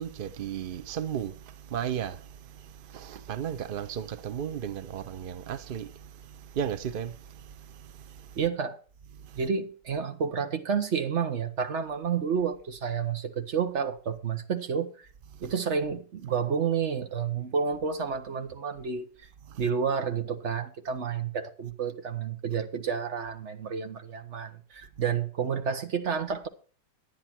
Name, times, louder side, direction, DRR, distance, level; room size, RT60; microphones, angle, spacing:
voice 1, 0.0-8.4 9.1-9.4 15.3-15.5 19.5-19.6, right 9 dB, 90° right, 0.4 m, -36 dB
voice 2, 8.4-8.8 9.4-14.9 15.4-19.1 19.6-26.5, right 6 dB, 45° right, 1.3 m, -30 dB
10.5 x 9.9 x 4.4 m
omnidirectional pair, 2.0 m